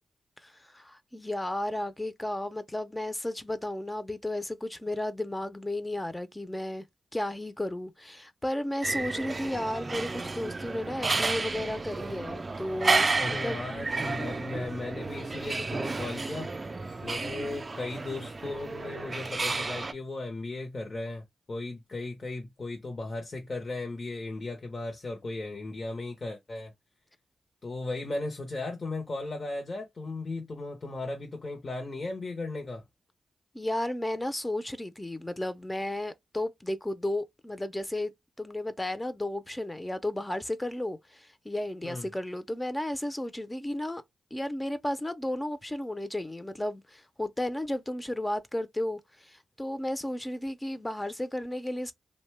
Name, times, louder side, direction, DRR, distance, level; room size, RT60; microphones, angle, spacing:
voice 1, 0.4-6.8 7.1-13.7 33.5-38.1 38.4-44.0 44.3-51.9, left 1 dB, 15° left, 0.5 m, -33 dB
sound 1, 8.8-19.9, right 3 dB, 40° right, 0.4 m, -32 dB
voice 2, 13.2-16.5 17.0-26.7 27.6-32.8 41.8-42.1, left 2 dB, 50° left, 0.7 m, -36 dB
2.7 x 2.1 x 3.1 m
cardioid pair, 50°, 0 cm